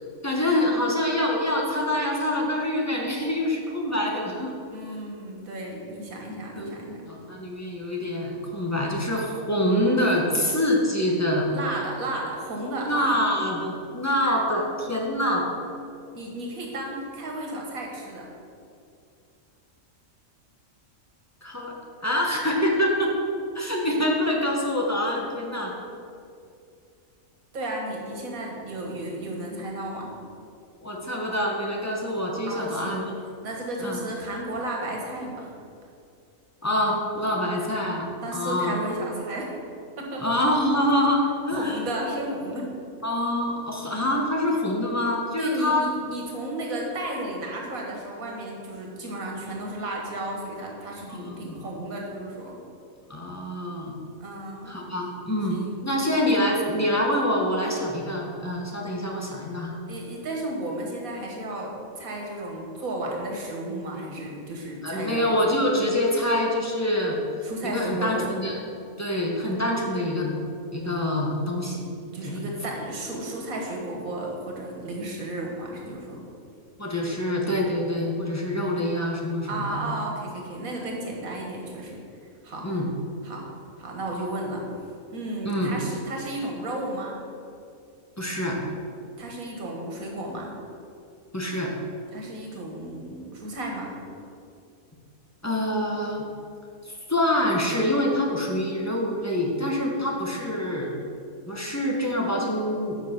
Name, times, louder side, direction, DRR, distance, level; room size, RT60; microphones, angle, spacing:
voice 1, 0.2-4.6 6.5-6.7 7.0-11.4 11.7-11.8 12.9-15.4 21.4-21.7 22.0-23.1 23.5-25.7 30.8-33.1 33.8-34.0 36.6-38.8 40.2-41.8 43.0-45.8 51.1-51.7 53.1-53.9 54.7-59.8 64.8-67.2 67.6-68.6 69.0-70.4 70.7-71.9 72.2-72.4 76.8-79.8 82.6-82.9 85.4-85.7 88.2-88.6 91.3-91.7 95.4-96.3 96.8-100.9 101.5-103.0, left 1 dB, 15° left, -2 dB, 1.0 m, -25 dB
voice 2, 4.7-7.0 11.5-13.2 16.1-18.3 27.5-30.1 32.4-33.0 33.4-35.5 38.2-39.6 40.0-40.2 41.5-42.7 45.4-52.6 54.2-54.8 55.5-55.8 59.9-65.3 67.4-68.3 72.1-76.2 79.5-82.0 82.4-82.7 83.2-83.5 83.8-84.6 85.1-87.2 89.2-90.5 92.1-93.9, right 1 dB, 85° right, -1 dB, 1.9 m, -33 dB
7.6 x 5.9 x 5.9 m, 2.5 s
omnidirectional pair, 1.4 m